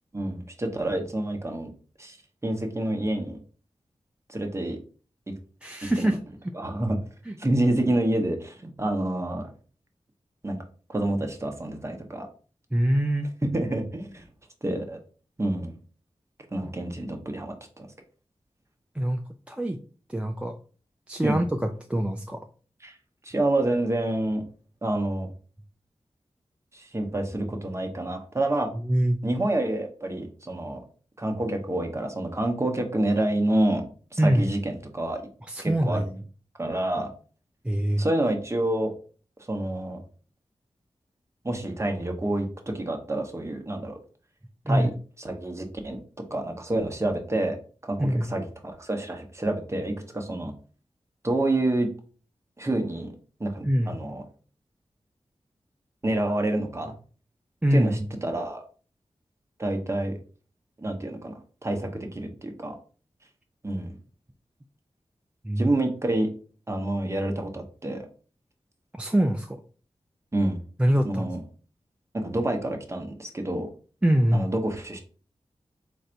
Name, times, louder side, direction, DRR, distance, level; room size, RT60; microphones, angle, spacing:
voice 1, 0.1-1.7 2.0-2.2 2.4-3.4 4.3-4.8 6.0-6.1 6.5-7.0 7.4-9.5 10.4-10.6 10.9-12.3 13.5-14.2 14.6-15.0 15.4-15.8 16.5-17.9 21.2-21.4 22.8-23.0 23.2-24.4 24.8-25.3 26.7-28.7 29.2-30.8 31.2-33.8 34.1-35.2 35.6-36.0 36.6-37.1 38.0-38.9 39.5-40.0 41.4-44.0 44.7-44.9 45.2-46.0 46.3-47.6 47.8-50.5 51.2-51.9 52.6-53.1 53.4-54.2 56.0-56.9 57.7-58.7 59.6-60.1 60.8-61.3 61.6-62.8 63.6-64.0 65.6-66.3 66.7-68.0 70.3-70.6 71.0-71.4 72.1-73.7 74.3-75.0, right 1 dB, 25° right, 4 dB, 0.9 m, -28 dB
voice 2, 5.6-6.2 7.3-7.4 12.7-13.3 19.0-19.2 19.5-19.8 20.1-20.6 21.1-22.4 28.9-29.2 34.2-34.5 35.5-36.2 37.6-38.1 44.7-44.9 48.0-48.3 53.6-54.0 57.6-58.1 65.4-65.7 68.9-69.6 70.8-71.3 74.0-74.5, right 1 dB, 10° right, 5 dB, 0.4 m, -24 dB
3.9 x 2.6 x 4.4 m, 0.39 s
wide cardioid pair, 90°, 11 cm